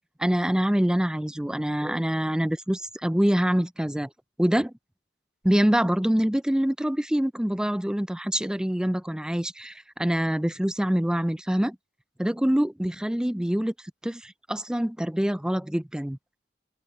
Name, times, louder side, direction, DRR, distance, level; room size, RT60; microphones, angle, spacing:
voice 1, 0.2-4.1 4.4-4.7 5.4-11.8 12.2-13.7 14.0-16.2, equal, 5° right, 0.4 m, -25 dB
head